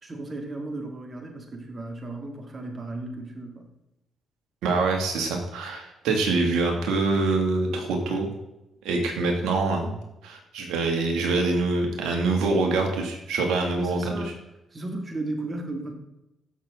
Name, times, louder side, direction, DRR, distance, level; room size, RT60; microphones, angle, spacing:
voice 1, 0.0-3.7 13.7-14.3 14.7-15.9, right 2 dB, 35° right, 3 dB, 2.9 m, -35 dB
voice 2, 4.6-8.3 8.8-10.0 10.2-14.2, right 3 dB, 75° right, 2 dB, 2.6 m, -25 dB
15.5 x 6.8 x 3.9 m, 0.91 s
supercardioid pair, 55°, 0 cm